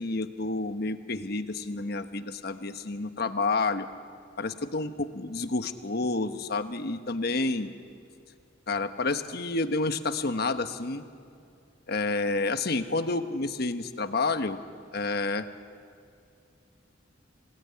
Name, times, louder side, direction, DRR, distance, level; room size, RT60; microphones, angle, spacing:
voice 1, 0.0-3.9 4.4-7.7 8.7-11.0 11.9-14.6 14.9-15.5, left 3 dB, 55° left, 9 dB, 1.2 m, -29 dB
26.5 x 18.0 x 9.8 m, 2.5 s
head